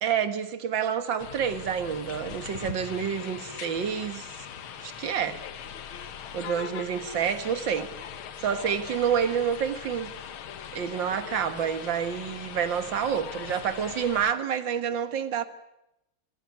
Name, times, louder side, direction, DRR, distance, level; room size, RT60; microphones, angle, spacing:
voice 1, 0.0-4.4 4.8-5.4 6.3-7.9 8.4-10.1 10.7-15.5, right 8 dB, 65° right, 2.0 m, -28 dB
sound 1, 1.2-14.3, left 8 dB, 80° left, 2.0 m, -40 dB
26.5 x 14.5 x 9.4 m
omnidirectional pair, 2.3 m